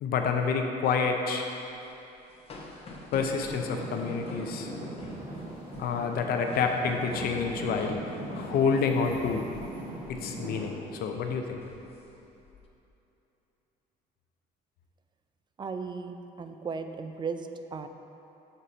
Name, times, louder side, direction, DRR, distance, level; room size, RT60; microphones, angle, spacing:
voice 1, 0.0-1.5 3.1-4.7 5.8-8.0 8.3-9.5 10.1-11.6, left 5 dB, 65° left, 3 dB, 0.6 m, -28 dB
sound 1, 1.7-9.8 10.0-10.3 10.7-11.0 11.5-12.6, left 2 dB, 35° left, 0.8 m, -46 dB
Traffic noise roadway noise / Engine, 3.4-10.7, right 1 dB, 55° right, 1.5 m, -40 dB
voice 2, 15.6-17.9, right 5 dB, 25° right, 8 dB, 0.4 m, -36 dB
6.6 x 4.2 x 5.0 m, 3.0 s
cardioid pair, 110°, 17 cm